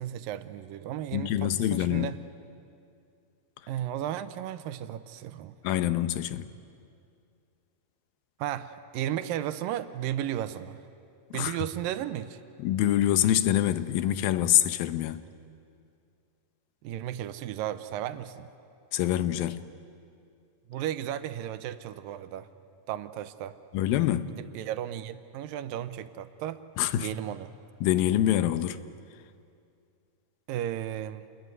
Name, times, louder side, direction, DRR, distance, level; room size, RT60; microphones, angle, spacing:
voice 1, 0.0-2.2 3.7-5.6 8.4-10.8 11.3-12.4 16.8-18.5 20.7-22.5 22.9-23.6 24.3-26.6 27.0-27.5 30.5-31.3, right 11 dB, 80° right, 2.5 m, -34 dB
voice 2, 1.1-2.1 5.6-6.5 11.3-11.6 12.6-15.2 18.9-19.6 23.7-24.3 26.8-27.1 27.8-28.8, left 12 dB, 85° left, 2.6 m, -25 dB
27.5 x 21.5 x 9.5 m
omnidirectional pair, 4.0 m